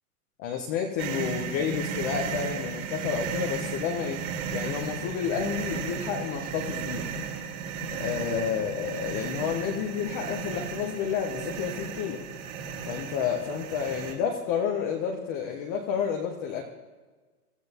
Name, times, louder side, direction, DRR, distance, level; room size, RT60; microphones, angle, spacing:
voice 1, 0.4-4.2 4.5-7.1 7.9-12.2 12.8-16.6, left 7 dB, 15° left, 2 dB, 0.3 m, -30 dB
sound 1, 1.0-14.1, right 6 dB, 55° right, 3.8 m, -34 dB
24.5 x 14.5 x 2.7 m, 1.3 s
hypercardioid pair, 130°, 47 cm